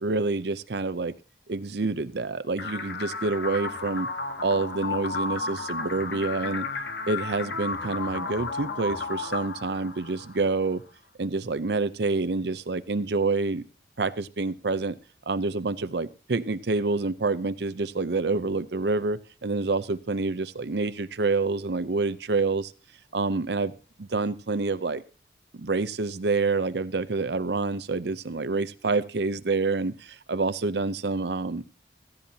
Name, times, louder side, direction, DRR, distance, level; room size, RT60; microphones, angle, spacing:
voice 1, 0.0-1.1 1.5-4.1 4.4-6.7 7.1-10.8 11.2-13.6 14.0-15.0 15.3-22.7 23.1-23.7 24.0-25.0 25.5-31.6, right 3 dB, 65° right, 15 dB, 0.6 m, -27 dB
sound 1, 2.6-10.6, left 3 dB, 70° left, 1.5 m, -33 dB
16.0 x 14.5 x 2.8 m, 0.33 s
head